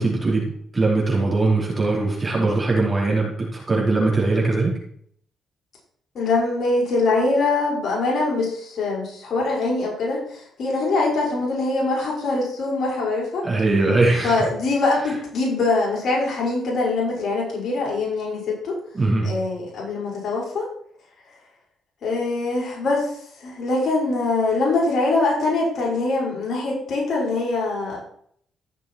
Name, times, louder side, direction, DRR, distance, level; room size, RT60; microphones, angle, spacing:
voice 1, 0.0-4.7 13.4-14.4 18.9-19.3, right 3 dB, 25° right, -3 dB, 4.4 m, -21 dB
voice 2, 6.1-13.4 14.2-18.8 19.2-20.7 22.0-28.0, left 3 dB, 55° left, -4 dB, 6.0 m, -23 dB
15.0 x 6.9 x 4.7 m, 0.64 s
cardioid pair, 90°, 0 cm